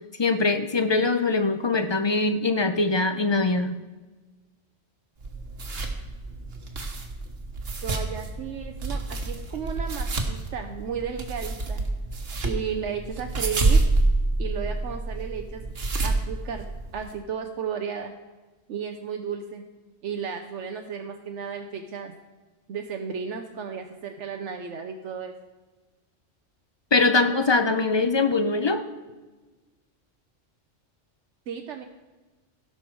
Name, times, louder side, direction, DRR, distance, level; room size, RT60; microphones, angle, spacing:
voice 1, 0.2-3.8 26.9-28.8, left 3 dB, 40° left, 9 dB, 0.4 m, -22 dB
sound 1, 5.2-17.1, right 2 dB, 55° right, 1.4 m, -28 dB
voice 2, 7.8-11.8 12.4-13.9 14.4-15.6 16.0-16.7 16.9-18.1 18.7-19.6 20.0-22.1 22.7-25.4 31.5-31.8, right 7 dB, 75° right, 4 dB, 1.0 m, -34 dB
16.5 x 5.8 x 4.6 m, 1.2 s
omnidirectional pair, 1.3 m